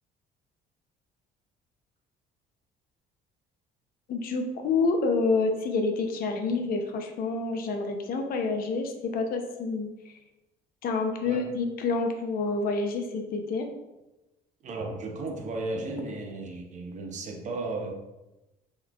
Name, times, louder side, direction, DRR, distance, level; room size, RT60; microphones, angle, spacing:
voice 1, 4.1-9.9 10.8-13.7 16.0-16.1, left 3 dB, 60° left, 4 dB, 0.5 m, -28 dB
voice 2, 14.6-17.9, right 2 dB, 45° right, 2 dB, 0.6 m, -34 dB
3.8 x 3.1 x 2.3 m, 1.0 s
cardioid pair, 110°, 17 cm